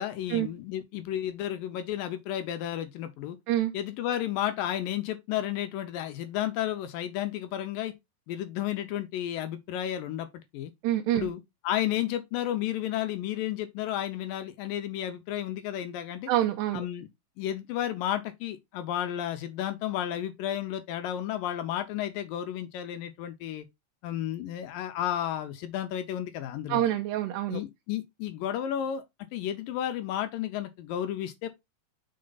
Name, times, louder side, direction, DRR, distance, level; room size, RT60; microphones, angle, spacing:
voice 1, 0.0-3.4 3.7-7.9 8.3-10.3 10.5-10.7 11.1-16.3 16.7-17.1 17.4-23.7 24.0-26.8 27.5-29.0 29.3-31.5, left 11 dB, 75° left, 2.1 m, -32 dB
voice 2, 10.8-11.3 16.3-16.8 26.7-27.6, right 13 dB, 85° right, 2.9 m, -26 dB
6.5 x 4.3 x 3.9 m
omnidirectional pair, 4.8 m